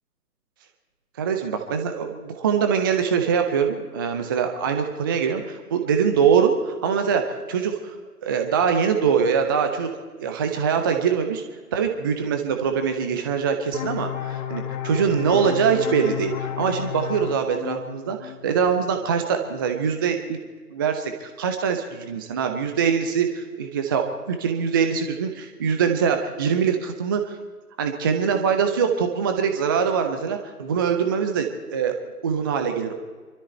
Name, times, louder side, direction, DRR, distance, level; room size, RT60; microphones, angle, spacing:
voice 1, 1.2-7.9 8.2-9.9 10.2-11.4 11.7-20.4 20.7-27.4 27.8-31.9 32.2-32.9, right 6 dB, 15° right, 6 dB, 0.5 m, -23 dB
sound 1, 13.7-19.1, left 10 dB, 25° left, 1.0 m, -32 dB
25.0 x 13.0 x 4.4 m, 1.4 s
figure-of-eight pair, 130°, 48 cm